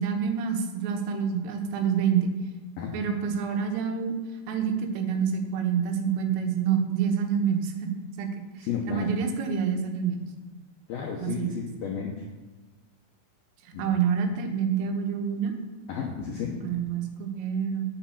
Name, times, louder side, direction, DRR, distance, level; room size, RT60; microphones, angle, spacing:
voice 1, 0.0-2.3 2.9-4.1 4.5-10.3 11.2-11.7 13.8-15.5 16.6-17.8, right 7 dB, 80° right, 4 dB, 3.8 m, -27 dB
voice 2, 8.7-9.1 10.9-12.1 13.7-13.8 15.9-16.6, left 6 dB, 80° left, -1 dB, 2.1 m, -32 dB
8.7 x 7.9 x 7.2 m, 1.2 s
omnidirectional pair, 5.7 m